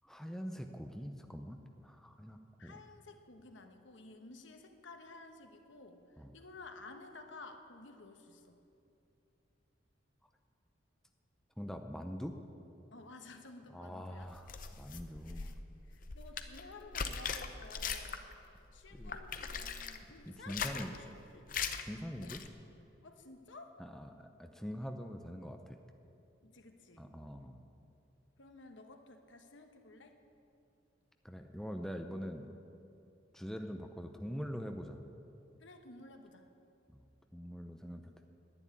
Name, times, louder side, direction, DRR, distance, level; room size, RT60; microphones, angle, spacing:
voice 1, 0.0-2.8 6.2-6.3 11.6-12.3 13.7-14.5 14.8-15.5 18.9-19.2 20.3-20.9 21.9-22.4 23.8-25.8 27.0-27.6 31.2-32.5 33.3-35.0 36.9-37.1 37.3-38.3, equal, ahead, 4 dB, 0.6 m, -44 dB
voice 2, 2.6-8.6 12.9-14.3 15.3-15.5 15.9-18.3 18.7-21.5 22.1-22.4 23.0-23.8 26.4-27.1 28.4-30.2 35.6-36.5, left 3 dB, 75° left, 6 dB, 1.2 m, -53 dB
sound 1, 14.2-18.4 18.7-20.0 20.4-21.0 21.5-21.8 22.2-22.5, left 6 dB, 45° left, 0.7 m, -40 dB
11.0 x 9.7 x 9.8 m, 2.7 s
head